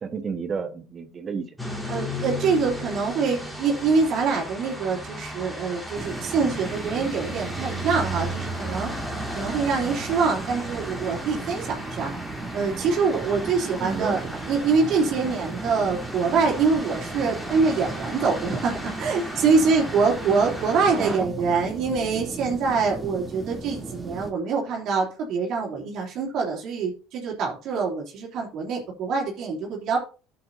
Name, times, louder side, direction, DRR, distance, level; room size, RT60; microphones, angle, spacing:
voice 1, 0.0-1.6 13.8-14.2 20.9-21.3 21.5-21.6, right 5 dB, 35° right, 9 dB, 1.3 m, -31 dB
sound 1, 1.6-21.2, equal, 5° left, 4.1 m, -35 dB
voice 2, 1.9-8.9 9.3-12.1 12.5-14.2 14.5-30.0, right 4 dB, 60° right, -1 dB, 3.1 m, -24 dB
sound 2, 5.9-24.3, right 3 dB, 15° right, 2.8 m, -36 dB
12.5 x 7.8 x 2.7 m, 0.35 s
hypercardioid pair, 80°, 0 cm